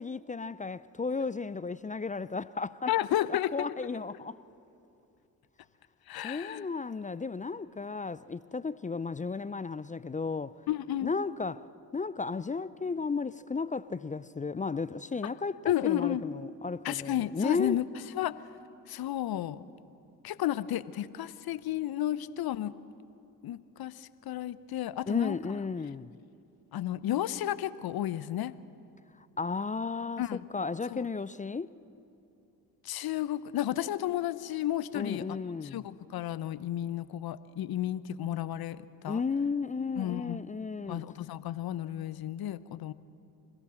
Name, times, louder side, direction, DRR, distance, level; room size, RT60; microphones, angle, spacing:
voice 1, 0.0-2.9 3.3-4.4 6.2-10.5 11.0-11.6 11.9-17.8 25.1-26.1 29.4-31.7 34.9-35.9 39.1-41.0, left 4 dB, 20° left, 0.5 m, -34 dB
voice 2, 2.9-3.7 6.1-6.7 10.7-11.1 15.7-16.2 16.8-17.8 18.1-18.4 18.9-19.6 20.2-22.7 23.4-25.4 26.7-28.5 30.2-30.5 30.9-31.0 32.8-35.4 35.6-39.2 40.0-40.4 40.9-42.9, left 12 dB, 55° left, 0.9 m, -32 dB
27.0 x 16.0 x 7.7 m
hypercardioid pair, 45°, 44 cm